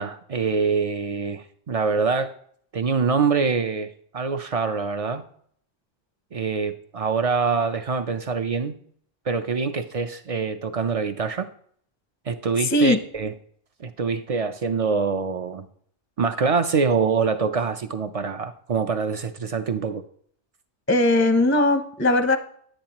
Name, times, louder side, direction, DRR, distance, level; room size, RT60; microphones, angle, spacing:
voice 1, 0.0-2.3 2.7-5.2 6.3-8.7 9.3-11.5 12.3-13.3 13.8-15.7 16.2-20.0, right 5 dB, 60° right, 9 dB, 0.3 m, -25 dB
voice 2, 12.6-13.0 20.9-22.4, left 2 dB, 15° left, 8 dB, 0.4 m, -19 dB
10.5 x 8.9 x 2.9 m, 0.62 s
omnidirectional pair, 1.2 m